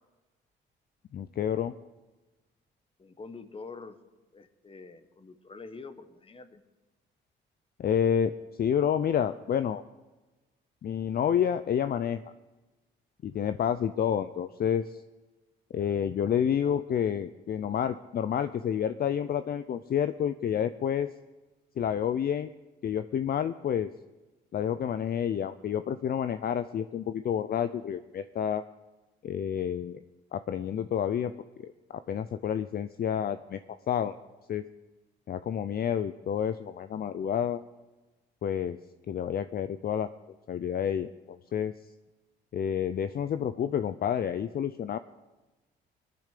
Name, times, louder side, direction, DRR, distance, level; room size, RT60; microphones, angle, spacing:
voice 1, 1.1-1.7 7.8-8.3 8.6-9.8 10.8-12.2 13.2-15.0 15.7-21.1 21.8-22.5 22.8-23.9 24.5-28.6 29.2-30.0 30.3-31.3 31.6-33.6 33.9-34.1 34.5-34.6 35.3-37.6 38.4-38.8 39.1-40.1 40.5-41.7 42.5-45.0, left 8 dB, 50° left, 12 dB, 0.6 m, -29 dB
voice 2, 3.0-4.0 4.3-6.6, left 4 dB, 30° left, 10 dB, 1.4 m, -46 dB
20.0 x 10.5 x 6.7 m, 1.2 s
cardioid pair, 90°, 20 cm